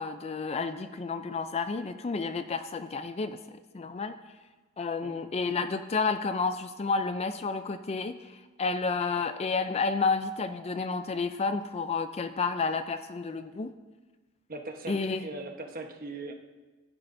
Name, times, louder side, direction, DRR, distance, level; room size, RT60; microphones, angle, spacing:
voice 1, 0.0-4.2 4.8-8.2 8.6-13.7 14.9-15.2, left 4 dB, 30° left, 10 dB, 0.4 m, -30 dB
voice 2, 14.5-16.3, right 2 dB, 40° right, 3 dB, 1.1 m, -40 dB
15.5 x 11.0 x 2.6 m, 1.3 s
head